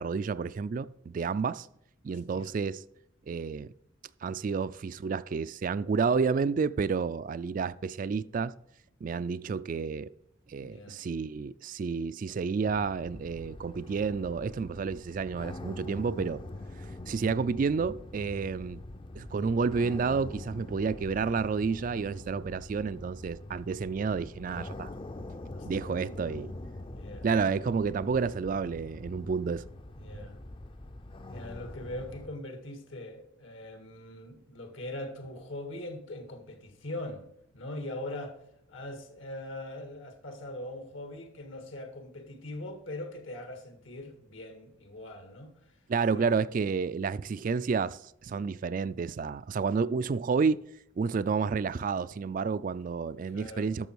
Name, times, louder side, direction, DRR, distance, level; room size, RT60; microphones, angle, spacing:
voice 1, 0.0-1.7 2.0-2.8 3.3-3.7 4.2-8.5 9.0-10.1 10.5-16.4 17.1-18.8 19.2-24.9 25.6-26.5 27.2-29.6 45.9-50.6 51.0-53.9, right 5 dB, 40° right, 0.3 m, -30 dB
voice 2, 2.1-2.5 10.6-11.0 25.5-25.9 26.9-27.3 30.0-30.4 31.3-37.3 37.5-38.4 38.7-45.8 46.1-46.3 53.3-53.7, left 1 dB, 75° left, 1.8 m, -41 dB
sound 1, 12.7-32.3, left 2 dB, 25° left, 0.5 m, -44 dB
12.0 x 6.7 x 4.6 m
head